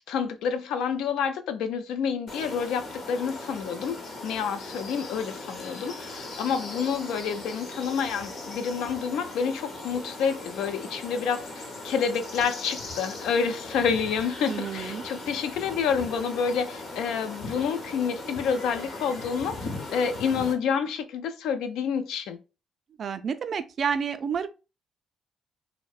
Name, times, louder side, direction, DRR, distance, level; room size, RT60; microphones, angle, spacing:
voice 1, 0.0-4.0 4.2-22.4, left 6 dB, 85° left, 0.3 m, -28 dB
sound 1, 2.3-20.5, left 2 dB, 60° left, 0.8 m, -39 dB
voice 2, 14.5-15.0 23.0-24.5, right 6 dB, 55° right, 0.3 m, -29 dB
2.7 x 2.0 x 2.3 m
cardioid pair, 90°, 0 cm